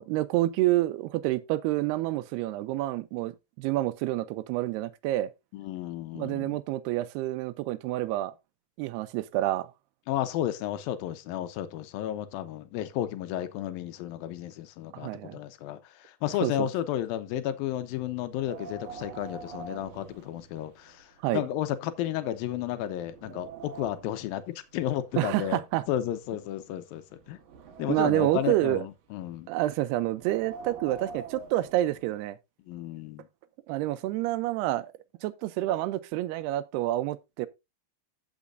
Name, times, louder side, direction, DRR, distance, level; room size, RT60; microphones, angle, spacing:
voice 1, 0.0-5.3 6.2-8.3 8.8-9.7 14.9-15.4 16.4-16.7 21.2-21.4 25.2-25.8 27.9-28.8 29.5-32.4 33.7-34.9 35.2-37.5, right 15 dB, 90° right, 2.7 m, -28 dB
voice 2, 5.5-6.6 10.1-21.1 21.3-25.6 25.9-27.4 27.8-29.5 32.7-33.3, left 12 dB, 75° left, 2.4 m, -32 dB
Wind, 18.3-20.9 21.3-21.4 22.0-22.1 22.6-24.2 25.1-26.6 27.2-28.8 30.1-32.2, right 5 dB, 65° right, 2.9 m, -44 dB
15.5 x 6.2 x 2.6 m
omnidirectional pair, 4.6 m